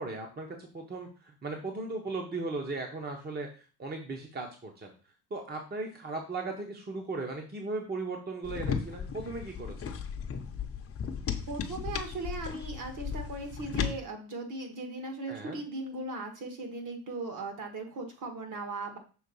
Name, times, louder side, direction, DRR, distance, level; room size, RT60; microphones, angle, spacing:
voice 1, 0.0-4.9 5.3-10.0 15.3-15.6, right 3 dB, 25° right, 2 dB, 0.9 m, -37 dB
sound 1, 8.4-13.9, left 7 dB, 35° left, 0.7 m, -35 dB
voice 2, 11.5-19.0, right 2 dB, 50° right, 4 dB, 1.7 m, -38 dB
6.3 x 3.6 x 5.4 m, 0.37 s
cardioid pair, 145°, 38 cm